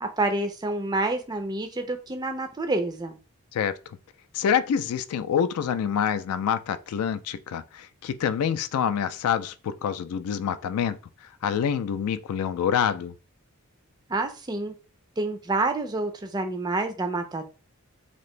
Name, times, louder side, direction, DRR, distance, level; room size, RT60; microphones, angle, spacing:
voice 1, 0.0-3.2 14.1-14.7 15.2-17.5, right 2 dB, 20° right, 0.4 m, -28 dB
voice 2, 4.3-11.0 11.4-13.1, left 8 dB, 85° left, 0.3 m, -26 dB
2.8 x 2.5 x 3.1 m
head